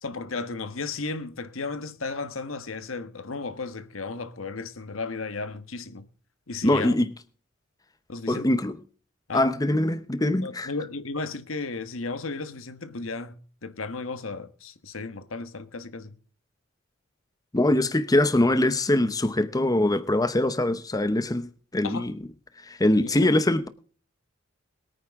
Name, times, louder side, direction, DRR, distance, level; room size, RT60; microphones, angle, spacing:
voice 1, 0.0-6.0 6.5-7.0 8.1-8.5 9.3-9.5 10.4-16.1 21.8-22.1 23.0-23.3, left 3 dB, 85° left, 1.3 m, -34 dB
voice 2, 6.6-7.1 8.3-8.8 9.3-10.7 17.5-22.1 22.6-23.7, left 1 dB, 20° left, 0.8 m, -23 dB
22.0 x 9.4 x 3.6 m
head